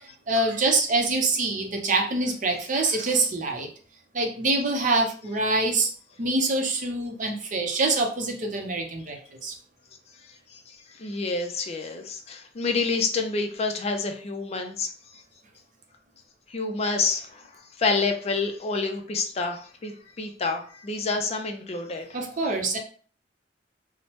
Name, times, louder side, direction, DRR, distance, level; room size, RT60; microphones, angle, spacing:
voice 1, 0.3-3.7 4.1-5.9 6.2-9.5 22.1-22.8, right 2 dB, 45° right, 2 dB, 0.6 m, -25 dB
voice 2, 10.5-14.9 16.5-22.1, left 4 dB, 35° left, 5 dB, 0.4 m, -28 dB
3.0 x 2.0 x 3.0 m, 0.44 s
head